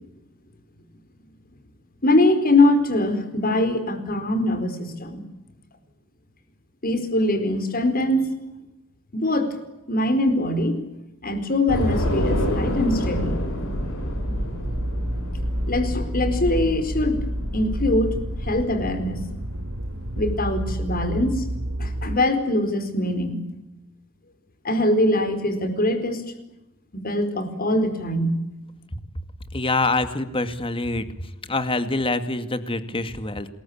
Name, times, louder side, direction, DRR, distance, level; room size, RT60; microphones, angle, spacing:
voice 1, 2.0-5.2 6.8-8.4 9.1-9.6 9.9-10.8 11.2-13.4 15.7-17.3 17.5-18.2 18.4-19.2 20.2-21.5 21.8-23.4 24.6-26.2 26.9-28.4, left 1 dB, 45° left, 9 dB, 4.7 m, -22 dB
Train / Subway metro underground, 11.7-21.1, equal, 85° left, 7.7 m, -29 dB
sound 1, 14.2-22.2, equal, 80° right, 2.9 m, -30 dB
voice 2, 29.5-33.5, left 2 dB, 25° left, 10 dB, 2.3 m, -25 dB
28.0 x 21.5 x 8.8 m, 0.92 s
head